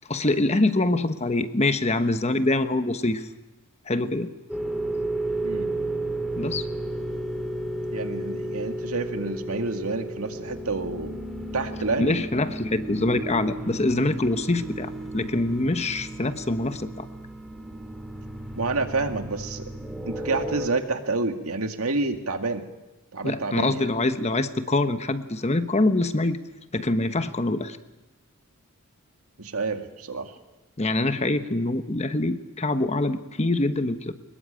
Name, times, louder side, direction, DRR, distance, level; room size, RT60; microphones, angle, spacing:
voice 1, 0.1-3.2 3.9-4.3 6.3-6.6 12.0-17.1 23.2-26.4 26.7-27.8 30.8-34.1, left 2 dB, 30° left, 10 dB, 1.1 m, -24 dB
sound 1, 4.5-20.7, right 1 dB, ahead, 2.5 m, -33 dB
voice 2, 7.9-11.2 11.5-12.2 18.6-19.6 20.1-22.7 23.1-23.9 29.4-30.4, right 3 dB, 90° right, 6 dB, 2.1 m, -28 dB
23.5 x 21.5 x 9.0 m, 1.0 s
head